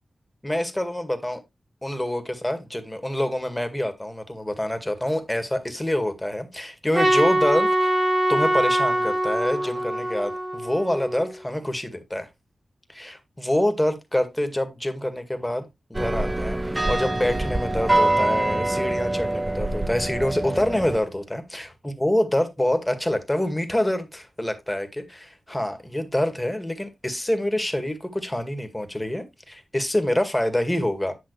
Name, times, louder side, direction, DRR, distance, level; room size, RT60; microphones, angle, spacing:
voice 1, 0.4-1.4 1.8-8.0 8.3-12.3 12.9-31.1, left 1 dB, 10° left, 2.0 m, -26 dB
Trumpet, 6.9-11.3, right 1 dB, 70° right, 5.8 m, -23 dB
sound 1, 15.9-21.0, right 2 dB, 20° right, 0.6 m, -25 dB
10.5 x 5.7 x 3.3 m
wide cardioid pair, 70°, 0 cm